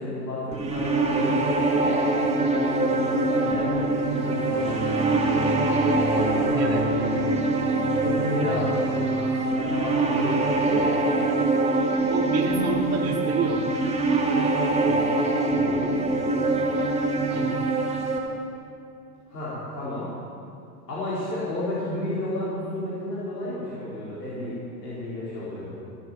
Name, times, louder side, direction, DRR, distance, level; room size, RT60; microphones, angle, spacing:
voice 1, 0.0-5.1 6.1-6.7 7.9-11.0 14.7-15.0 15.3-16.7 19.3-20.1 20.9-24.5 24.8-25.8, left 1 dB, 75° left, -9 dB, 4.6 m, -32 dB
sound 1, 0.5-18.2, right 2 dB, 10° right, 2.6 m, -24 dB
sound 2, 4.1-13.5, right 1 dB, 80° right, 2.8 m, -33 dB
voice 2, 12.1-13.7 17.3-17.6, right 4 dB, 30° right, 0 dB, 2.9 m, -28 dB
17.5 x 8.1 x 7.5 m, 2.5 s
hypercardioid pair, 100°, 50 cm